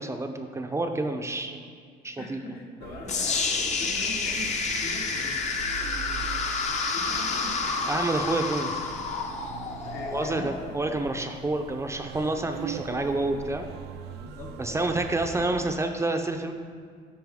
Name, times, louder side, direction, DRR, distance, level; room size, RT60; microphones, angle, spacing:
voice 1, 0.0-1.6 2.0-2.4 7.9-8.8 10.1-13.7 14.6-16.5, right 2 dB, 15° right, 5 dB, 0.5 m, -28 dB
voice 2, 2.2-8.0 9.8-10.5 14.0-15.3, left 2 dB, 80° left, -3 dB, 1.9 m, -42 dB
sound 1, 2.8-15.7, right 8 dB, 75° right, 0.5 m, -42 dB
sound 2, 3.1-11.1, left 4 dB, 45° left, 0.8 m, -29 dB
12.0 x 4.7 x 3.6 m, 2.1 s
cardioid pair, 110°, 17 cm